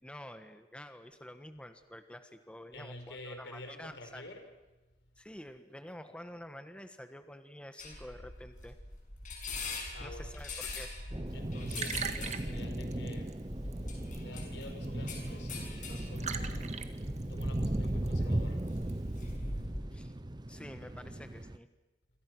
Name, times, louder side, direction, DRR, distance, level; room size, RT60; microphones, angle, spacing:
voice 1, 0.0-4.2 5.2-8.8 10.0-10.9 19.9-20.2 20.5-21.7, left 1 dB, 5° left, 8 dB, 1.3 m, -48 dB
voice 2, 2.7-4.4 9.9-10.3 11.3-13.5 14.2-16.7 17.3-18.7, left 1 dB, 70° left, 6 dB, 5.1 m, -48 dB
sound 1, 7.8-19.9, left 2 dB, 50° left, 6.8 m, -42 dB
sound 2, 11.1-21.6, right 1 dB, 25° right, 0.8 m, -37 dB
Liquid, 11.3-19.4, right 6 dB, 40° right, 1.8 m, -45 dB
28.0 x 26.5 x 6.2 m, 1.1 s
head